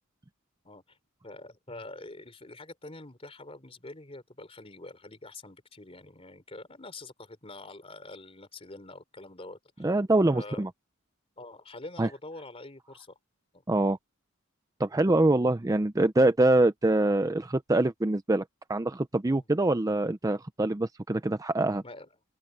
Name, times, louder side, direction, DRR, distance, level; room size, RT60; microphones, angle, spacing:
voice 1, 0.6-1.0 1.2-9.9 10.3-10.6 11.4-13.2 13.5-13.6 19.3-19.5 21.8-22.1, left 2 dB, 30° left, 3.6 m, -45 dB
voice 2, 9.8-10.7 12.0-12.1 13.7-14.0 14.8-18.4 18.7-21.8, right 2 dB, 15° right, 0.5 m, -24 dB
open air
head